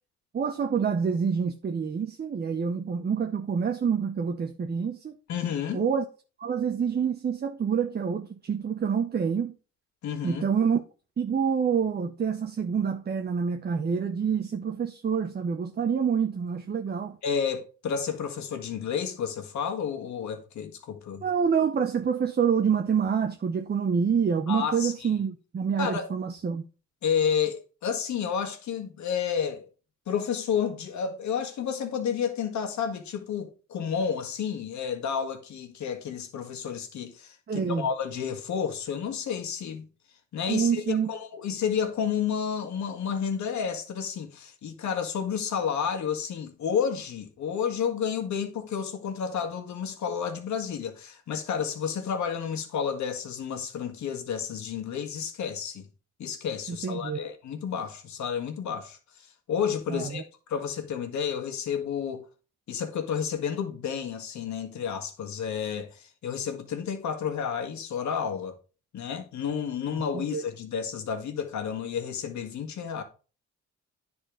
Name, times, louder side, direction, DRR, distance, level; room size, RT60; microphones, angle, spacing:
voice 1, 0.3-5.2 5.7-6.0 6.4-9.5 10.2-10.8 11.2-17.2 21.2-26.6 37.5-37.9 40.5-41.1 56.7-57.2 59.9-60.2 70.1-70.5, right 6 dB, 35° right, 0.8 m, -27 dB
voice 2, 5.3-5.8 10.0-10.4 17.2-21.3 24.5-25.1 25.8-26.1 27.0-29.7 30.1-39.9 40.3-55.9 56.2-60.2 60.5-62.2 62.7-68.6 68.9-73.0, left 7 dB, 65° left, 1.9 m, -31 dB
10.0 x 4.4 x 5.0 m
cardioid pair, 90°, 30 cm